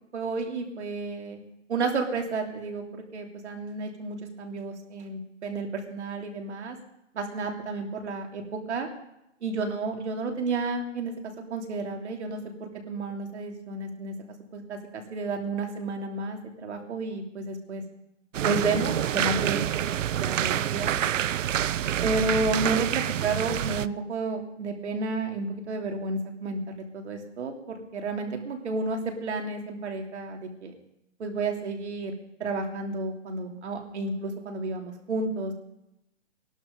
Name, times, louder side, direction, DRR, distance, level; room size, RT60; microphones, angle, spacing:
voice 1, 0.1-1.4 1.7-6.8 7.1-8.9 9.4-11.1 11.5-14.1 14.5-17.8 18.4-19.9 20.2-21.0 22.0-30.7 31.2-32.1 32.4-35.5, right 3 dB, 60° right, 3 dB, 3.0 m, -31 dB
sound 1, 18.3-23.9, right 10 dB, 80° right, 0.7 m, -27 dB
20.0 x 11.5 x 5.2 m, 0.85 s
hypercardioid pair, 170°, 38 cm